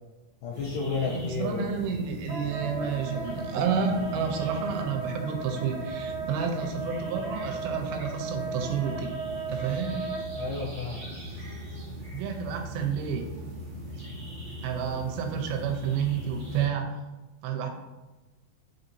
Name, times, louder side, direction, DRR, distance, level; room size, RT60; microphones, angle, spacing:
voice 1, 0.4-1.8 10.4-11.0, left 4 dB, 80° left, -5 dB, 1.9 m, -32 dB
sound 1, 0.5-16.7, right 1 dB, 60° right, 1.3 m, -40 dB
voice 2, 1.0-9.1 9.5-10.0 12.1-13.3 14.6-17.0 17.4-17.7, right 7 dB, 90° right, 3 dB, 2.5 m, -30 dB
Wind instrument woodwind instrument, 2.3-10.5, right 4 dB, 55° left, 1.1 m, -36 dB
5.3 x 3.9 x 2.6 m, 1.1 s
omnidirectional pair, 4.3 m